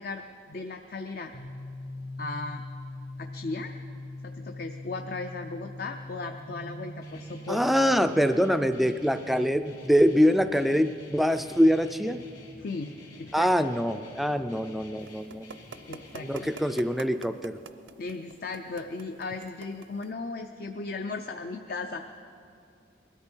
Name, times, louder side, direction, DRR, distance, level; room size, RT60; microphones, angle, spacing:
voice 1, 0.0-1.3 2.2-2.6 3.2-3.7 4.2-7.6 12.6-13.7 15.9-16.5 18.0-22.0, left 3 dB, 55° left, 6 dB, 0.5 m, -36 dB
sound 1, 1.3-15.0, left 1 dB, 70° left, 2.1 m, -44 dB
Guitar, 7.0-16.8, left 2 dB, 85° left, 3.6 m, -51 dB
voice 2, 7.5-12.2 13.3-15.5 16.2-17.6, equal, ahead, 10 dB, 0.3 m, -24 dB
sound 2, 15.1-20.1, right 5 dB, 75° right, 0.6 m, -44 dB
21.0 x 13.0 x 4.5 m, 2.5 s
head